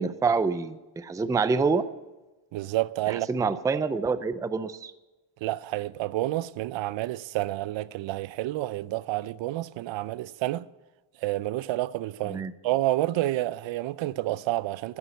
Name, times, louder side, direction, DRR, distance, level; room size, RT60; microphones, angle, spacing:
voice 1, 0.0-1.9 3.1-4.9 12.3-12.5, right 4 dB, 10° right, 0.4 m, -26 dB
voice 2, 2.5-3.5 5.4-10.7 11.2-15.0, right 16 dB, 65° right, 0.5 m, -29 dB
10.0 x 9.9 x 9.3 m
cardioid pair, 115°, 49 cm